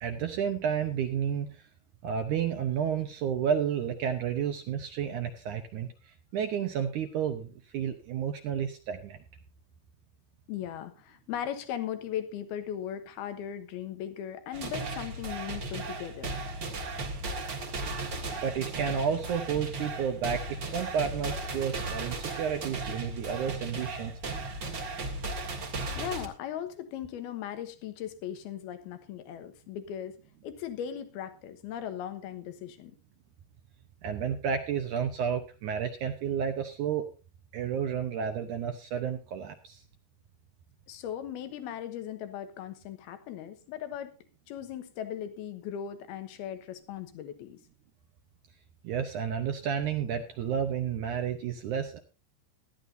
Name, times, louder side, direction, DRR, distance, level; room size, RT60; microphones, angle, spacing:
voice 1, 0.0-1.6 2.0-9.2 18.4-24.2 34.0-37.1 37.5-39.8 48.8-52.0, right 8 dB, 70° right, 6 dB, 2.0 m, -31 dB
voice 2, 10.5-16.4 26.0-30.2 30.4-32.9 40.9-44.2 44.5-47.6, left 10 dB, 80° left, 9 dB, 3.1 m, -38 dB
sound 1, 14.5-26.3, right 2 dB, 45° right, 1.6 m, -36 dB
18.0 x 12.5 x 2.7 m, 0.32 s
omnidirectional pair, 4.5 m